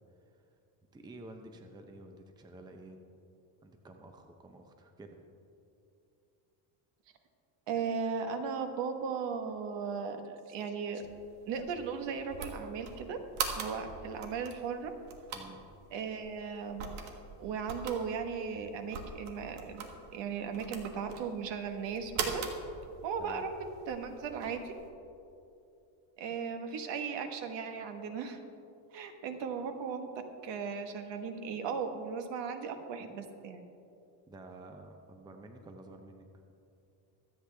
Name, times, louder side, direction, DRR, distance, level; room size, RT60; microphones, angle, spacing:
voice 1, 0.9-3.0 3.6-5.2 15.3-15.6 23.2-23.4 34.3-36.3, right 2 dB, 10° right, 4 dB, 0.6 m, -50 dB
voice 2, 7.7-11.0 11.5-13.2 13.6-14.9 15.9-16.9 17.4-22.4 23.0-24.7 26.2-28.4 28.9-30.1 30.4-33.6, right 6 dB, 60° right, 6 dB, 1.3 m, -37 dB
sound 1, 11.0-24.9, right 5 dB, 90° right, 1.6 m, -42 dB
24.0 x 8.4 x 3.4 m, 2.7 s
cardioid pair, 145°, 48 cm